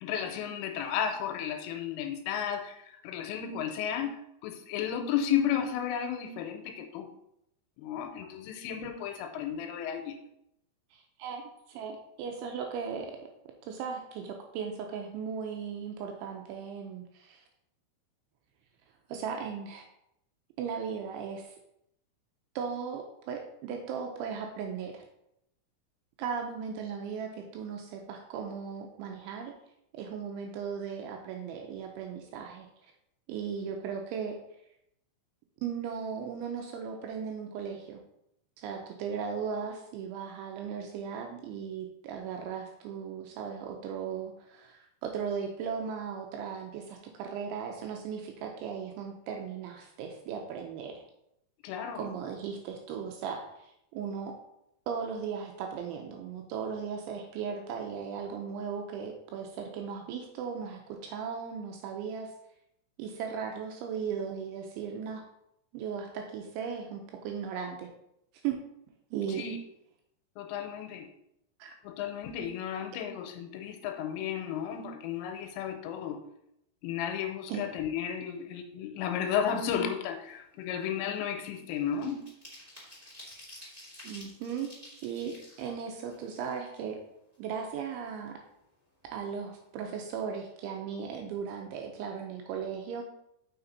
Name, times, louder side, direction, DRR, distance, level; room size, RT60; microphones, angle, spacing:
voice 1, 0.0-7.1 7.8-10.2 51.6-52.1 69.3-69.6 70.4-71.1 71.8-76.2 76.8-82.2, left 8 dB, 85° left, 6 dB, 3.1 m, -33 dB
voice 2, 10.9-13.2 13.6-17.4 19.1-19.9 20.6-21.6 22.6-25.0 26.2-29.5 29.9-32.7 33.3-34.4 35.6-38.0 38.6-51.1 52.0-54.4 54.9-62.3 63.0-65.2 65.7-67.9 68.4-68.6 69.1-69.4 71.6-71.8 77.5-77.6 84.0-84.7 85.0-87.0 87.4-88.4 89.1-93.0, right 6 dB, 80° right, 3 dB, 2.8 m, -37 dB
sound 1, 79.9-80.2 80.5-87.0 87.3-87.4 87.7-88.7 89.0-89.2 89.5-89.8, left 1 dB, 20° right, 1.0 m, -51 dB
6.9 x 5.8 x 4.0 m, 0.79 s
omnidirectional pair, 5.8 m